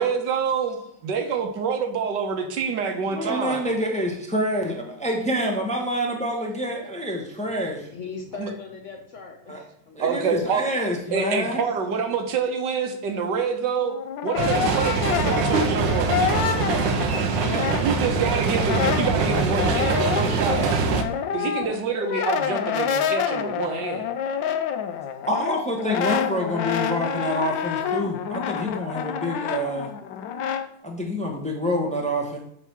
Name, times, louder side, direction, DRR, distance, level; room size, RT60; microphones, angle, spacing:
voice 1, 0.0-0.8 1.0-3.6 8.4-8.5 10.0-10.6 11.1-14.0 14.2-16.5 17.8-20.8 21.3-24.1, right 5 dB, 75° right, 5 dB, 1.5 m, -27 dB
voice 2, 3.1-7.9 9.5-9.6 9.9-11.6 25.3-29.9 30.8-32.4, equal, 5° left, 0 dB, 0.8 m, -27 dB
voice 3, 7.9-11.5, left 5 dB, 50° left, 2 dB, 1.0 m, -40 dB
Brass instrument, 13.8-18.2 18.5-30.7, left 8 dB, 85° left, 1.4 m, -28 dB
sound 1, 14.4-21.0, right 5 dB, 90° right, 1.4 m, -23 dB
8.1 x 3.1 x 5.9 m, 0.71 s
omnidirectional pair, 2.0 m